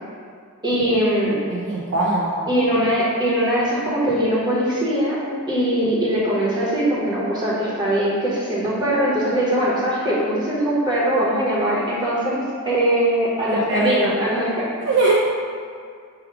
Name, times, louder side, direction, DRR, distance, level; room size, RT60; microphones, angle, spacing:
voice 1, 0.6-1.4 2.5-5.2 5.5-14.6, right 1 dB, 20° right, -7 dB, 1.0 m, -21 dB
voice 2, 1.5-2.5 13.5-14.1 14.9-15.1, right 2 dB, 55° right, -3 dB, 0.4 m, -21 dB
4.8 x 2.3 x 4.6 m, 2.2 s
head